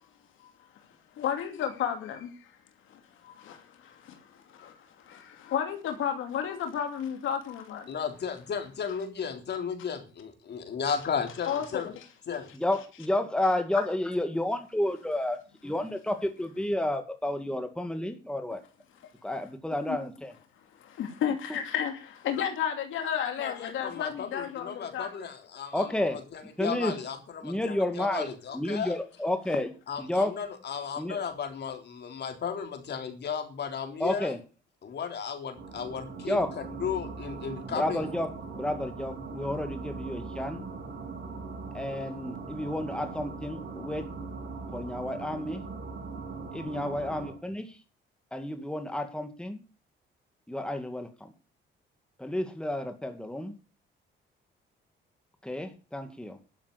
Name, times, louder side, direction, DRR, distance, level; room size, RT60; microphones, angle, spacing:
voice 1, 1.2-2.3 2.9-7.9 11.4-11.9 13.7-13.8 19.9-20.0 20.8-25.1 29.5-29.6, left 8 dB, 80° left, 2.5 m, -33 dB
voice 2, 7.9-11.9 12.3-12.5 23.4-29.0 29.9-34.4 34.8-38.1, left 7 dB, 60° left, 3.6 m, -35 dB
voice 3, 12.6-15.4 15.6-18.6 19.2-20.3 25.7-26.2 26.6-26.9 27.4-28.3 28.5-29.7 30.1-30.3 31.0-31.2 34.0-34.4 36.3-36.5 37.7-38.3 38.5-40.6 41.7-44.0 44.7-45.6 46.5-47.7 48.3-49.6 50.5-51.1 52.2-53.5 55.4-56.4, left 1 dB, 5° left, 2.1 m, -30 dB
sound 1, 35.6-47.3, right 4 dB, 65° right, 6.5 m, -40 dB
12.0 x 7.2 x 8.1 m
cardioid pair, 90°, 20 cm